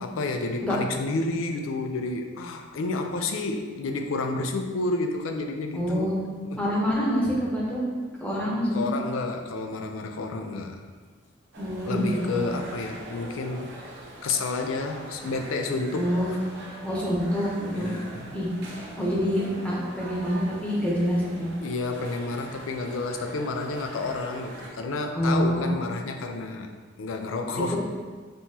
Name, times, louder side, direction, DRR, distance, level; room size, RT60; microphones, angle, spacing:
voice 1, 0.0-6.1 6.4-6.6 8.7-10.8 11.9-13.7 14.2-16.2 17.7-18.3 21.6-26.7 27.0-27.8, left 3 dB, 80° left, 5 dB, 0.4 m, -30 dB
voice 2, 5.7-6.2 6.6-7.8 8.2-8.9 11.6-12.4 15.9-16.3 16.8-17.9 18.3-18.5 19.0-21.5 25.1-25.7 27.7-27.8, equal, 5° left, -6 dB, 0.9 m, -26 dB
sound 1, 11.5-24.7, right 1 dB, 55° right, 0.8 m, -43 dB
5.4 x 3.0 x 2.8 m, 1.4 s
head